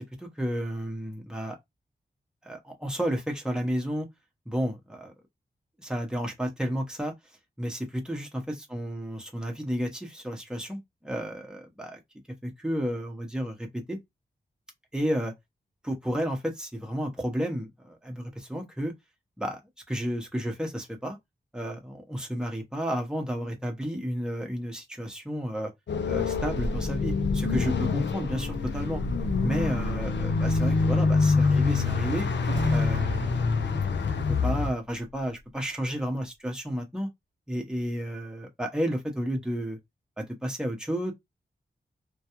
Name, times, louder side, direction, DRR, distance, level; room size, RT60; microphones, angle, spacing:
voice 1, 0.2-1.6 2.4-4.1 4.5-5.1 5.8-7.1 7.6-12.0 12.4-14.0 14.9-15.3 15.8-18.9 19.4-19.6 19.9-21.2 21.5-25.7 26.0-29.0 29.4-32.3 32.7-33.8 34.3-37.1 37.5-39.8 40.2-41.1, equal, 5° right, 0.8 m, -32 dB
sound 1, 25.9-34.7, left 4 dB, 70° left, 0.5 m, -26 dB
sound 2, 31.4-35.6, right 3 dB, 70° right, 0.5 m, -39 dB
2.3 x 2.2 x 2.9 m
cardioid pair, 40°, 20 cm